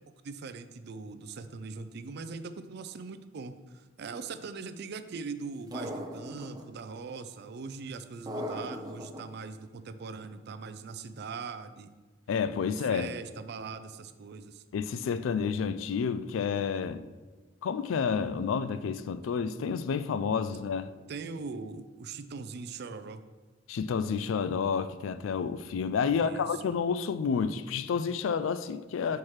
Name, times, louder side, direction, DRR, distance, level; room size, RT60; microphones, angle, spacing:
voice 1, 0.2-11.9 12.7-14.6 21.1-23.2 26.1-26.5, right 4 dB, 55° right, 0.4 m, -41 dB
sound 1, 5.7-6.6 8.3-9.2, equal, 20° right, 0.6 m, -37 dB
voice 2, 12.3-13.1 14.7-17.0 17.6-20.9 23.7-29.2, left 6 dB, 85° left, 0.4 m, -30 dB
5.7 x 4.6 x 4.7 m
head